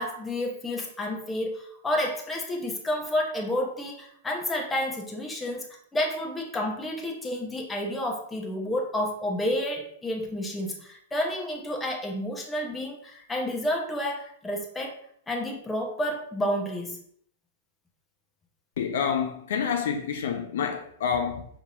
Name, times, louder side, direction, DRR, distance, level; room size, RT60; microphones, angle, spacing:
voice 1, 0.0-5.7 5.9-15.0 15.3-17.0, left 1 dB, 10° left, 0.9 m, -30 dB
voice 2, 18.8-21.5, left 7 dB, 65° left, 0.4 m, -28 dB
5.2 x 2.9 x 2.7 m
hypercardioid pair, 110°, 0 cm